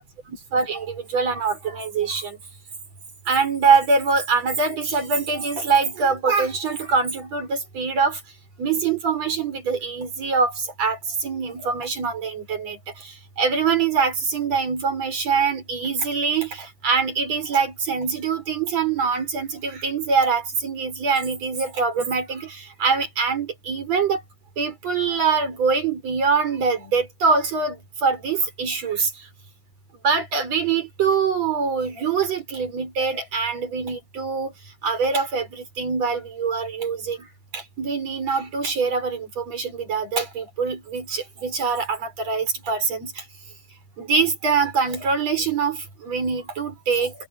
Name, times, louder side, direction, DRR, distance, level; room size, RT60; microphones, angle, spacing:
voice 1, 0.3-2.4 3.3-8.2 8.6-12.8 13.4-24.2 24.6-29.1 30.0-34.5 34.8-37.2 37.5-43.1 44.0-47.1, right 5 dB, 45° right, 6.2 m, -24 dB
omnidirectional pair, 4.0 m